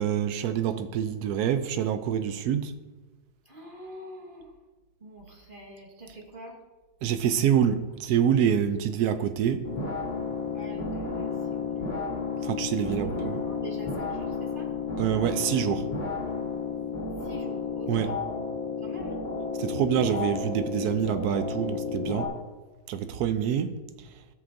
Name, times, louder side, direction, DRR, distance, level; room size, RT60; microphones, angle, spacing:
voice 1, 0.0-2.7 7.0-9.7 12.4-13.3 15.0-15.9 17.9-18.1 19.6-22.3 22.9-23.7, right 9 dB, 75° right, 9 dB, 0.9 m, -26 dB
voice 2, 3.4-4.5 5.0-6.6 10.5-11.9 12.8-14.7 17.2-18.2 18.8-19.2, right 1 dB, 40° right, 0 dB, 0.7 m, -44 dB
sound 1, 9.6-22.3, left 4 dB, 30° left, 1.9 m, -32 dB
14.0 x 6.1 x 2.6 m, 1.2 s
omnidirectional pair, 2.1 m